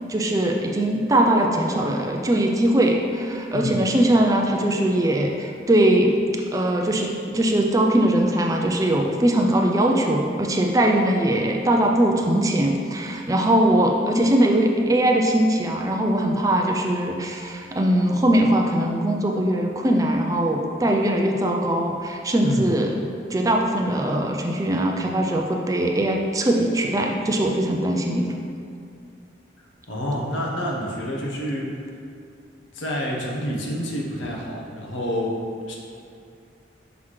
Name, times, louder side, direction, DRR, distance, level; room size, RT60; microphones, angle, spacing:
voice 1, 0.1-6.1 6.5-22.9 23.3-28.3, right 1 dB, 20° right, 1 dB, 0.4 m, -21 dB
voice 2, 3.5-3.8 22.4-22.7 29.9-31.8 32.7-35.4 35.7-35.8, equal, 80° left, -2 dB, 1.1 m, -28 dB
5.9 x 3.2 x 5.6 m, 2.3 s
head